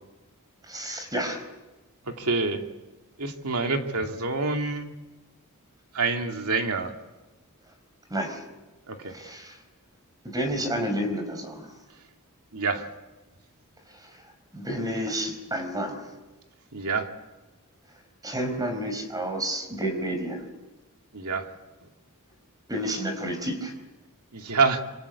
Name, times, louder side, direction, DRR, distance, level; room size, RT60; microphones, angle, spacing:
voice 1, 0.7-1.4 8.1-8.4 9.1-9.6 10.2-11.7 13.9-14.1 14.5-16.0 18.2-20.5 22.7-23.7, right 1 dB, 15° right, 6 dB, 4.7 m, -30 dB
voice 2, 2.0-2.6 3.2-4.9 5.9-6.9 8.9-9.1 12.5-12.9 16.7-17.1 21.1-21.5 24.3-24.8, right 4 dB, 80° right, 4 dB, 2.6 m, -27 dB
26.5 x 26.0 x 8.4 m, 1.1 s
head